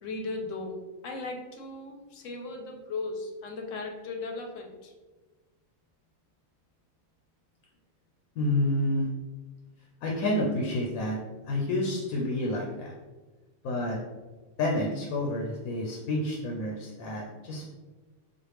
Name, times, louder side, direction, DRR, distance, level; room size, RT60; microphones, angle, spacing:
voice 1, 0.0-4.9, left 3 dB, 70° left, 3 dB, 0.9 m, -37 dB
voice 2, 8.4-9.1 10.0-11.2 11.5-12.9 13.6-14.0 14.6-17.6, left 1 dB, 90° left, -1 dB, 1.1 m, -29 dB
4.3 x 2.4 x 3.1 m, 1.2 s
omnidirectional pair, 1.4 m